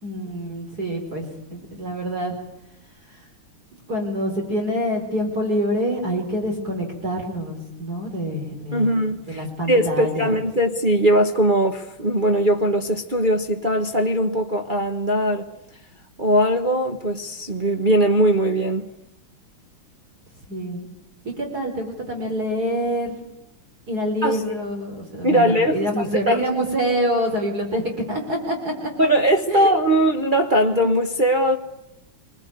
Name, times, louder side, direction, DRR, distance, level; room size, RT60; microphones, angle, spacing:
voice 1, 0.0-2.4 3.1-3.2 3.9-10.4 20.5-20.8 21.2-23.2 23.9-27.8 28.1-28.9 29.5-29.7, equal, 45° right, 4.9 m, -26 dB
voice 2, 8.7-15.5 16.2-18.9 24.2-24.4 25.2-26.4 29.0-31.6, right 1 dB, 25° right, 1.3 m, -20 dB
26.5 x 21.0 x 9.4 m
omnidirectional pair, 2.3 m